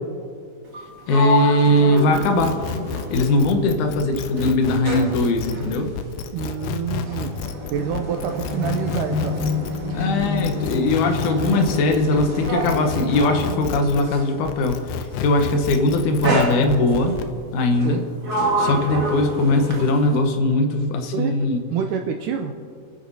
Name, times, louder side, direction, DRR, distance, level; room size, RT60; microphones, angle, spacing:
Sliding door, 0.6-3.9 4.2-14.4 15.3-15.6 16.2-17.1 17.7-20.3, left 1 dB, 45° right, 1.2 m, -27 dB
voice 1, 1.1-2.6 3.1-5.9 9.9-17.2 17.5-18.0 18.6-21.6, left 2 dB, 65° left, 4 dB, 2.3 m, -20 dB
sound 1, 2.0-14.1 14.5-17.3, left 7 dB, 85° left, 2.6 m, -32 dB
voice 2, 6.3-7.4 7.7-9.4 17.8-18.0 21.1-21.3 21.7-22.5, right 8 dB, 85° right, 4 dB, 1.9 m, -27 dB
29.5 x 10.5 x 2.7 m, 2.3 s
omnidirectional pair, 4.4 m